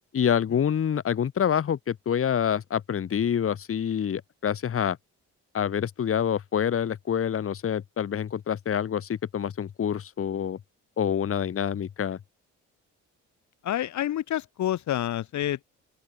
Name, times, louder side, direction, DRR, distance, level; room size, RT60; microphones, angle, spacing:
voice 1, 0.1-5.0 5.5-10.6 11.0-12.2, left 8 dB, 45° left, 1.7 m, -27 dB
voice 2, 13.6-15.6, left 12 dB, 70° left, 1.6 m, -28 dB
open air
cardioid pair, 90°, 30 cm